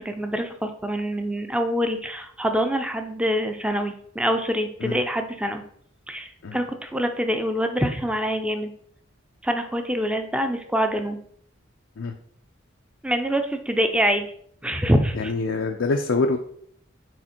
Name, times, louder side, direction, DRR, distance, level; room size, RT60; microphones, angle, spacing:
voice 1, 0.0-5.6 6.1-8.7 9.4-11.2 13.0-14.3 14.6-15.3, equal, 5° right, 6 dB, 0.5 m, -25 dB
voice 2, 15.1-16.4, left 3 dB, 85° left, 3 dB, 0.6 m, -25 dB
6.4 x 4.2 x 4.4 m, 0.62 s
head